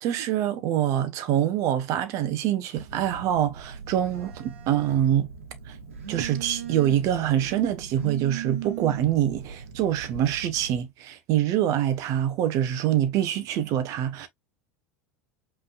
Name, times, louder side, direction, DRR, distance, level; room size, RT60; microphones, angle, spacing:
voice 1, 0.0-5.3 5.7-5.8 6.1-14.3, right 11 dB, 50° right, 1.3 m, -25 dB
Telephone, 2.7-10.8, right 8 dB, 75° right, 1.8 m, -39 dB
5.4 x 3.8 x 2.4 m
hypercardioid pair, 80°, 7 cm